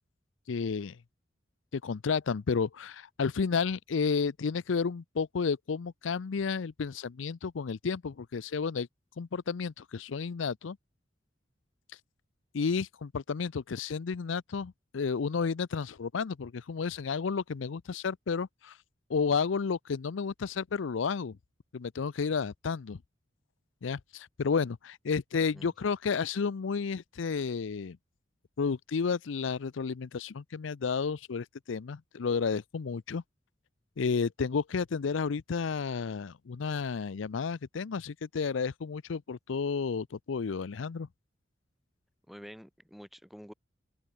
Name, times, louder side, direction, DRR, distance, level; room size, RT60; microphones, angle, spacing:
voice 1, 0.5-1.0 1.7-8.9 9.2-10.8 12.5-18.8 19.1-21.4 21.7-23.0 23.8-28.0 28.6-33.2 34.0-41.1, left 5 dB, 85° left, 0.5 m, -31 dB
voice 2, 42.3-43.5, equal, ahead, 4.3 m, -48 dB
open air
head